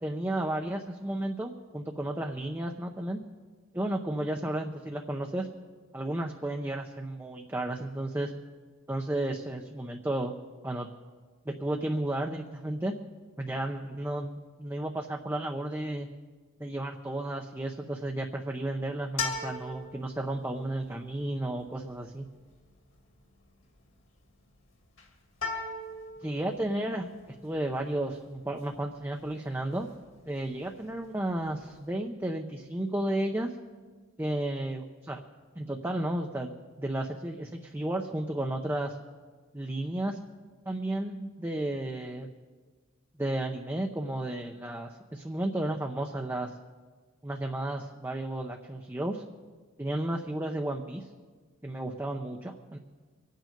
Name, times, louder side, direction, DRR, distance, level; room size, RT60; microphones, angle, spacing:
voice 1, 0.0-3.2 3.7-5.5 5.9-8.3 8.9-10.3 10.6-10.9 11.5-13.0 13.4-16.1 16.6-22.3 26.2-27.1 27.4-29.9 30.2-33.6 34.2-35.2 35.6-36.5 36.8-39.0 39.5-40.2 40.7-42.3 43.2-46.6 47.2-49.2 49.8-51.1 51.6-52.8, right 1 dB, 10° right, 2 dB, 0.7 m, -33 dB
sound 1, 19.0-31.9, left 4 dB, 60° left, 2.4 m, -41 dB
25.0 x 9.2 x 5.2 m, 1.4 s
head